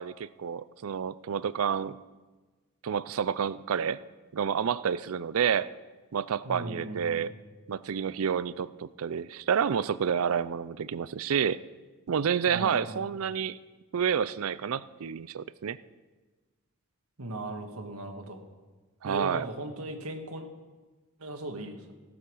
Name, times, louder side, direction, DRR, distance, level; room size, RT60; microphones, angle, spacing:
voice 1, 0.0-2.0 2.8-4.0 4.3-5.7 6.1-7.3 7.7-11.6 12.1-13.6 13.9-15.8 19.0-19.5, right 7 dB, 70° right, 18 dB, 0.4 m, -29 dB
voice 2, 6.4-7.3 12.5-13.1 17.2-18.4 19.0-20.4 21.2-21.9, right 1 dB, 85° right, 4 dB, 1.7 m, -38 dB
16.5 x 7.3 x 6.2 m, 1.3 s
head